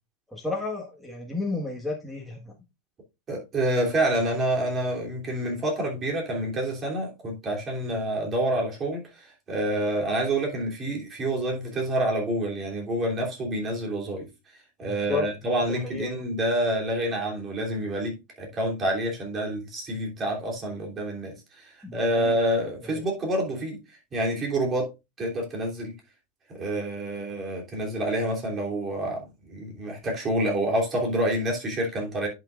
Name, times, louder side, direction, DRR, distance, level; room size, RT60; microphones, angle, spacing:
voice 1, 0.3-2.5 14.9-15.2 15.8-16.3 21.8-22.4, left 3 dB, ahead, 1.5 m, -32 dB
voice 2, 3.3-14.3 14.8-23.8 24.1-24.9 25.2-25.9 26.5-32.3, right 1 dB, 25° right, 3.1 m, -28 dB
10.5 x 6.1 x 2.5 m
supercardioid pair, 145°, 0 cm